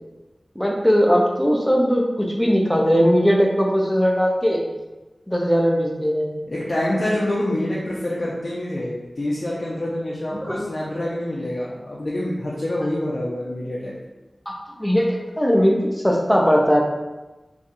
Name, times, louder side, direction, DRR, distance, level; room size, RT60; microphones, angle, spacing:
voice 1, 0.6-4.6 5.3-6.3 10.4-10.6 14.5-14.6 14.8-15.1 15.4-15.8 16.0-16.8, equal, 5° left, -1 dB, 0.6 m, -19 dB
voice 2, 6.5-13.9, left 1 dB, 55° left, -6 dB, 0.5 m, -26 dB
2.7 x 2.3 x 4.0 m, 1.1 s
wide cardioid pair, 65°, 0 cm